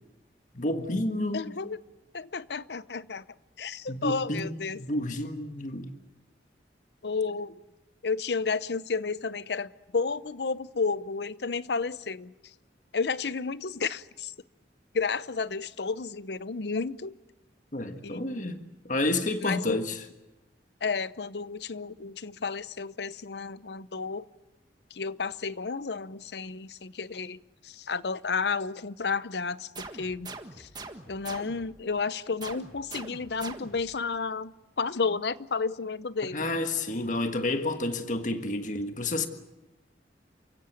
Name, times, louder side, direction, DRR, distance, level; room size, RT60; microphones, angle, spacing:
voice 1, 0.5-1.5 3.9-5.9 17.7-18.6 18.8-20.0 36.3-39.3, left 2 dB, 45° left, 1.6 m, -30 dB
voice 2, 1.3-1.8 2.1-3.2 3.6-4.8 7.0-7.5 8.0-12.3 12.9-14.3 14.9-17.1 18.0-18.5 19.4-19.8 20.8-24.2 24.9-29.7 30.0-30.3 30.6-30.7 31.1-36.5, left 4 dB, 70° left, 0.8 m, -32 dB
sound 1, 29.7-31.8 32.4-34.0, right 3 dB, 25° right, 1.6 m, -43 dB
29.0 x 16.5 x 9.2 m
head